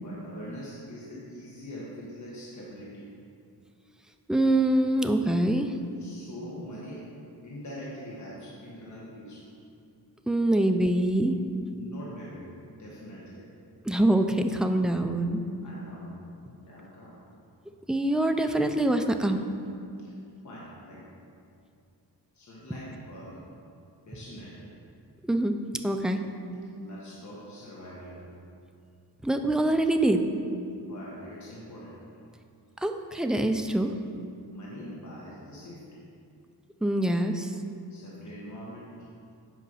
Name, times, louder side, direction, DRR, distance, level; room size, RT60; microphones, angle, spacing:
voice 1, 0.0-3.1 6.0-7.1 7.4-9.5 11.7-13.5 15.6-16.2 16.6-17.2 20.0-20.1 20.4-21.1 22.3-23.4 24.1-24.7 26.7-28.3 30.6-32.0 34.4-36.1 37.9-39.1, equal, 45° left, -6 dB, 1.4 m, -43 dB
voice 2, 4.3-5.7 10.3-11.4 13.8-15.4 17.9-19.4 25.2-25.6 25.8-26.2 29.2-30.2 32.8-33.9 36.8-37.5, right 1 dB, ahead, 5 dB, 0.4 m, -24 dB
8.3 x 5.1 x 5.5 m, 2.5 s
wide cardioid pair, 115°, 42 cm